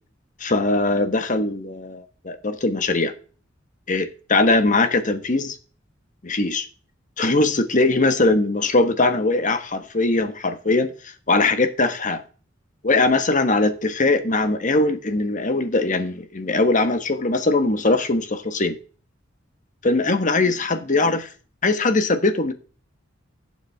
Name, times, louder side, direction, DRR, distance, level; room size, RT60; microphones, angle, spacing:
voice 1, 0.4-3.1 3.9-5.6 6.2-6.7 7.2-10.9 11.3-12.2 12.8-18.7 19.8-21.3 21.6-22.5, left 2 dB, 40° left, 1.4 m, -21 dB
16.5 x 7.4 x 3.6 m
head